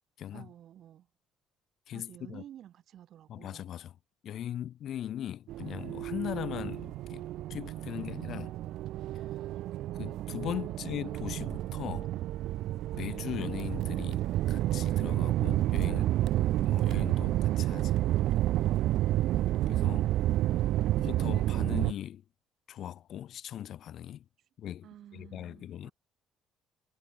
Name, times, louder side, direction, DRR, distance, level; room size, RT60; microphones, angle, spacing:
voice 1, 0.3-1.1 1.9-3.7 10.6-10.8 24.4-24.5 24.8-25.9, right 11 dB, 55° right, 2.2 m, -51 dB
voice 2, 1.9-2.4 3.3-3.9 4.2-8.6 9.9-12.1 12.9-14.2 14.5-16.1 16.7-18.0 19.7-20.1 21.0-22.2 22.7-24.2 24.6-24.9 25.1-25.9, left 11 dB, 55° left, 0.6 m, -39 dB
sound 1, 5.5-21.9, right 14 dB, 70° right, 0.3 m, -30 dB
cardioid pair, 135°, 0 cm